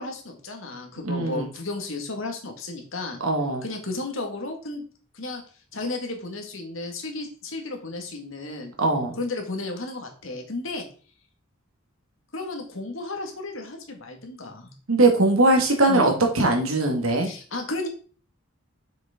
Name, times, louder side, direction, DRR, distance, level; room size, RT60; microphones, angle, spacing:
voice 1, 0.0-3.2 3.6-4.8 5.1-5.4 5.7-8.7 9.2-10.9 12.3-14.7 15.9-16.1 17.2-17.9, left 2 dB, 65° left, 2.0 m, -33 dB
voice 2, 1.0-1.5 3.2-3.7 8.8-9.2 14.9-17.3, right 2 dB, 80° right, 2.0 m, -21 dB
7.2 x 6.5 x 3.8 m
head